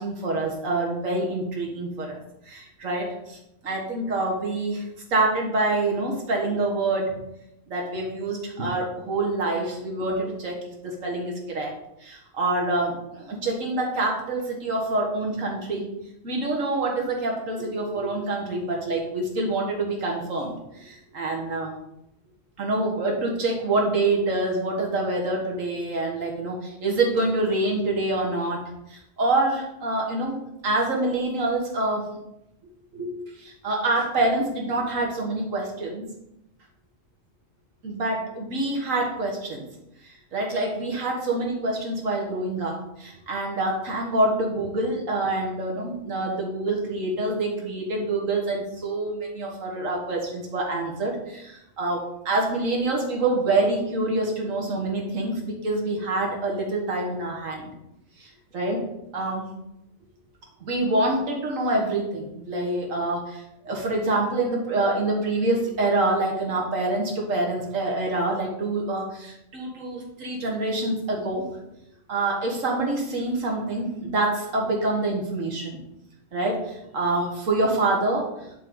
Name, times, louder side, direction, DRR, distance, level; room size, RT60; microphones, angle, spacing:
voice 1, 0.0-2.2 2.5-3.4 3.6-4.9 5.1-7.1 7.7-11.7 12.0-15.9 16.2-21.7 22.6-28.6 28.9-32.1 32.9-36.1 37.8-39.6 40.0-57.7 58.2-58.8 59.1-59.5 60.6-71.5 72.1-75.8 76.3-78.3, right 2 dB, 70° right, 0 dB, 2.0 m, -26 dB
10.0 x 4.8 x 3.9 m, 0.83 s
omnidirectional pair, 1.4 m